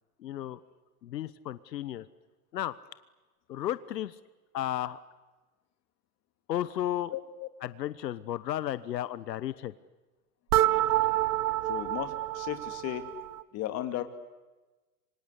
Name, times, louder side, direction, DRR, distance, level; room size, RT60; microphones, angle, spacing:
voice 1, 0.2-0.6 1.0-2.1 2.5-2.7 3.5-4.2 4.5-5.0 6.5-7.1 7.6-9.7, left 12 dB, 85° left, 15 dB, 1.3 m, -33 dB
voice 2, 7.1-7.5 11.7-13.1 13.5-14.0, left 13 dB, 30° left, 8 dB, 2.6 m, -35 dB
sound 1, 10.5-13.4, right 15 dB, 65° right, 1.1 m, -28 dB
27.5 x 25.0 x 8.3 m, 1.2 s
hypercardioid pair, 140°, 48 cm